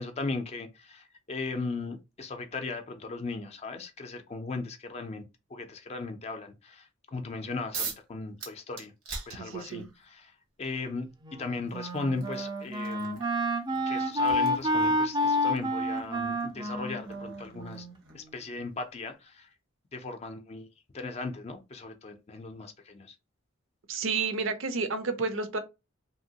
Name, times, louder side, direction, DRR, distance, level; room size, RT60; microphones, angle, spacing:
voice 1, 0.0-5.2 5.5-8.9 9.3-10.3 10.6-13.2 13.9-17.9 18.1-19.5 19.9-20.7 20.9-23.1, left 3 dB, 30° left, 0.4 m, -37 dB
sound 1, 7.7-8.1 8.4-10.0 11.1-11.2 11.7-18.3, right 5 dB, 90° right, 1.2 m, -43 dB
voice 2, 9.4-9.9 23.9-25.6, right 4 dB, 70° right, 0.6 m, -31 dB
Wind instrument woodwind instrument, 11.2-18.4, equal, 20° right, 0.4 m, -29 dB
2.9 x 2.8 x 2.7 m
head